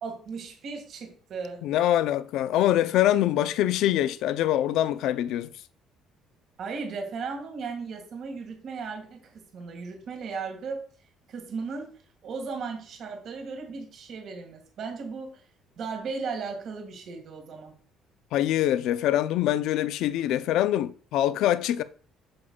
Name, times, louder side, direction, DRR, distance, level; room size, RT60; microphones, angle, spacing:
voice 1, 0.0-1.6 6.6-10.8 11.3-15.4 15.8-17.7, right 4 dB, 45° right, 1.9 m, -36 dB
voice 2, 1.6-5.5 18.3-21.8, left 12 dB, 65° left, 0.5 m, -24 dB
8.6 x 7.0 x 2.3 m
cardioid pair, 165°, 0 cm